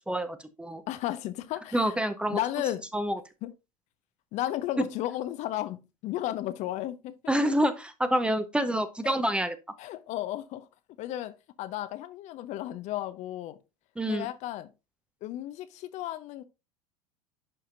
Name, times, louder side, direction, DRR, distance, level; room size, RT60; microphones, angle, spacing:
voice 1, 0.1-0.8 1.7-2.4 2.9-3.2 7.3-9.5 14.0-14.3, right 1 dB, 5° right, 0.7 m, -27 dB
voice 2, 0.9-2.0 2.3-2.8 3.4-3.5 4.3-7.1 9.0-9.2 9.8-10.7 11.0-11.3 11.6-13.6 14.1-14.7 15.2-16.4, left 13 dB, 40° left, 0.6 m, -34 dB
10.5 x 4.2 x 2.5 m
figure-of-eight pair, 85°, 18 cm